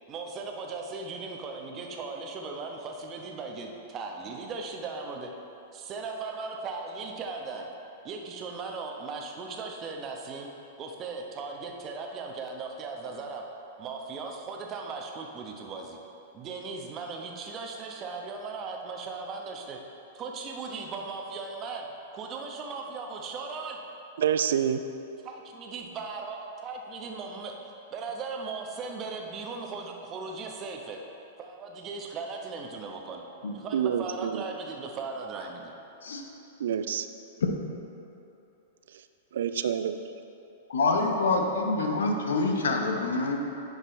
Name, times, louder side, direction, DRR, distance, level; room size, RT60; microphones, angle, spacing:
voice 1, 0.1-5.3 5.7-7.7 8.0-10.5 10.8-13.4 13.8-16.0 16.3-19.8 20.1-21.9 22.1-23.8 25.2-27.5 27.9-31.0 31.4-35.7, right 4 dB, 35° right, 1 dB, 0.9 m, -38 dB
voice 2, 24.2-24.8 33.7-34.4 36.6-37.1 39.3-40.0, right 8 dB, 70° right, 10 dB, 0.3 m, -27 dB
voice 3, 40.7-43.4, left 3 dB, 75° left, 3 dB, 0.8 m, -26 dB
9.8 x 5.3 x 3.1 m, 2.9 s
hypercardioid pair, 105°, 0 cm